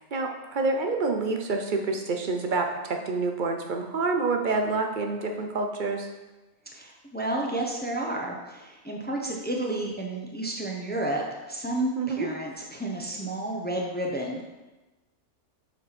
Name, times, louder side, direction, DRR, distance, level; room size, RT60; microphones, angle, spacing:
voice 1, 0.0-6.1 12.0-12.3, right 3 dB, 50° right, 3 dB, 0.6 m, -27 dB
voice 2, 6.7-14.5, right 1 dB, 10° left, 0 dB, 0.5 m, -31 dB
8.1 x 4.5 x 4.2 m, 1.1 s
omnidirectional pair, 1.5 m